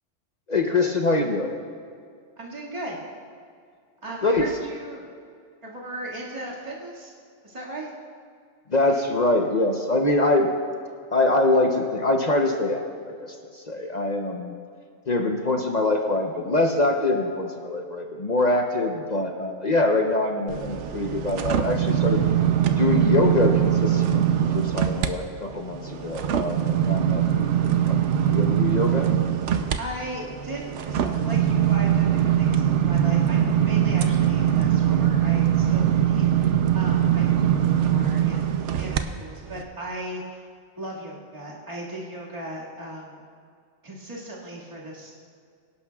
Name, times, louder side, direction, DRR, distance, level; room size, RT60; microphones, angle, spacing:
voice 1, 0.5-1.5 4.2-4.5 8.7-10.5 11.1-14.5 15.1-22.3 22.8-28.0 28.2-29.1, left 2 dB, 40° left, 2 dB, 0.8 m, -24 dB
voice 2, 2.4-3.0 4.0-5.1 5.6-7.1 7.4-7.9 29.7-38.5 38.7-40.4 40.8-43.2 43.8-45.1, right 1 dB, 25° right, -6 dB, 2.0 m, -37 dB
sound 1, 20.5-25.1 25.5-39.0 39.5-39.6, right 10 dB, 70° right, 1.0 m, -22 dB
24.0 x 11.0 x 2.3 m, 2.2 s
omnidirectional pair, 1.3 m